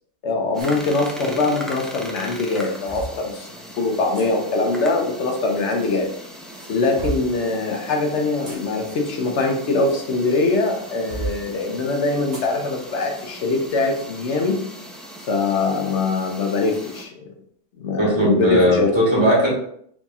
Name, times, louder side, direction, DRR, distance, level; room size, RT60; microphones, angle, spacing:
voice 1, 0.2-6.1 6.7-14.6 15.3-17.1 17.8-18.9, left 3 dB, 75° left, 3 dB, 1.1 m, -22 dB
sound 1, 0.5-17.0, equal, ahead, 0.4 m, -39 dB
sound 2, 0.6-0.8 2.0-3.2 4.1-4.3 5.4-6.0 6.5-7.4 8.2-10.2 10.7-11.4 12.3-12.5 13.0-13.1 13.7-13.9, right 2 dB, 80° right, 1.8 m, -34 dB
voice 2, 18.0-19.5, equal, 25° right, -6 dB, 1.6 m, -18 dB
5.0 x 4.2 x 2.3 m, 0.65 s
omnidirectional pair, 1.2 m